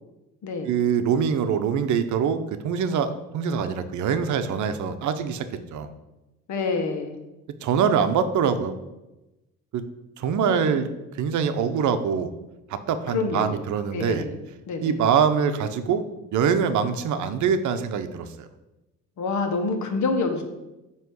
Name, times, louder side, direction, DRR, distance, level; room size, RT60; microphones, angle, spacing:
voice 1, 0.6-5.5 5.7-5.9 7.6-8.8 9.7-9.8 10.2-10.9 11.2-12.3 12.7-14.3 14.8-16.0 16.3-18.5, right 7 dB, 75° right, 10 dB, 0.7 m, -24 dB
voice 2, 6.5-7.1 10.4-10.8 13.1-13.6 13.9-14.3 14.7-14.9 19.2-20.4, left 4 dB, 70° left, 6 dB, 1.3 m, -27 dB
9.2 x 3.1 x 6.3 m, 1.0 s
cardioid pair, 90°, 30 cm